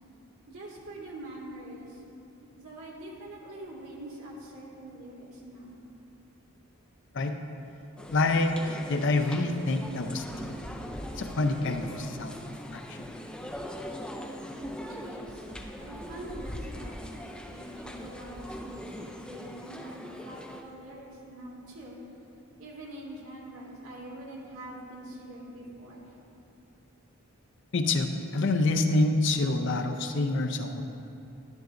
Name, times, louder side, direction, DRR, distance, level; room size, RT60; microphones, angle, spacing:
voice 1, 0.5-2.0 2.6-5.8 14.5-14.6 14.9-15.5 15.8-20.0 20.3-22.0 22.6-26.1, right 1 dB, 80° right, -4 dB, 2.0 m, -44 dB
sound 1, 8.0-20.6, equal, 5° left, 0.3 m, -41 dB
voice 2, 8.1-10.5 11.2-12.3 12.7-13.1 27.7-30.8, left 2 dB, 55° left, 6 dB, 0.5 m, -27 dB
10.5 x 10.5 x 2.6 m, 2.8 s
head